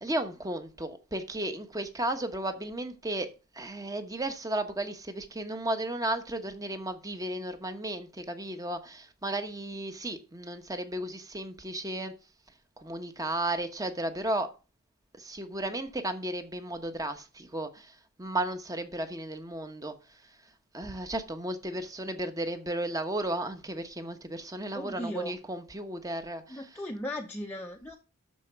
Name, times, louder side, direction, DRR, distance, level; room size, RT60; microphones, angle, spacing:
voice 1, 0.0-3.3 3.5-12.1 12.8-14.5 15.2-20.2 20.7-26.8, right 1 dB, 15° right, 1.2 m, -34 dB
voice 2, 24.7-25.4 26.5-28.0, equal, 10° left, 0.8 m, -37 dB
13.0 x 4.5 x 5.9 m
head